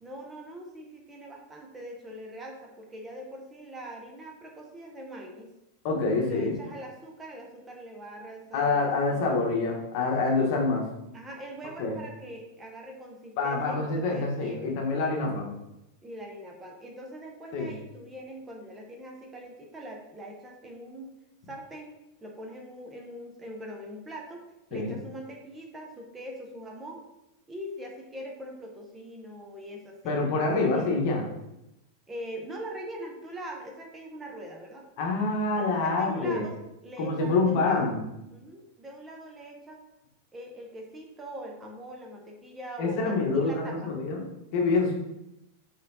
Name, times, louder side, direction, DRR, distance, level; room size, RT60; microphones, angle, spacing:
voice 1, 0.0-5.5 6.2-9.4 11.1-14.8 16.0-21.1 21.5-24.4 24.7-27.0 27.5-30.2 30.7-30.9 32.1-34.9 35.5-38.0 38.3-39.8 40.3-43.9, right 1 dB, 15° right, 1 dB, 0.7 m, -42 dB
voice 2, 5.8-6.5 8.5-10.8 11.8-12.0 13.4-15.5 17.5-17.7 24.7-24.9 30.0-31.2 35.0-36.4 37.0-38.0 42.8-44.2 44.5-44.9, left 3 dB, 55° left, 0 dB, 1.1 m, -26 dB
4.1 x 3.8 x 2.7 m, 0.89 s
supercardioid pair, 125°, 0 cm